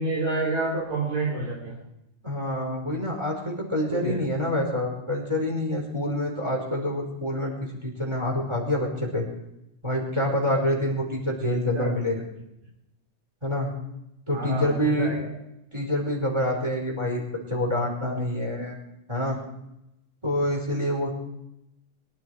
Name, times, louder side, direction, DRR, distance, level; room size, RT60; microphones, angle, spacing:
voice 1, 0.0-1.8 3.9-4.2 11.6-11.9 14.3-15.3, right 2 dB, 65° right, -4 dB, 4.5 m, -28 dB
voice 2, 2.2-9.3 9.8-12.2 13.4-13.7 14.3-15.1 15.7-18.8 19.1-19.4 20.2-21.1, left 1 dB, 10° right, 0 dB, 4.8 m, -27 dB
24.0 x 12.0 x 4.8 m, 0.85 s
omnidirectional pair, 3.5 m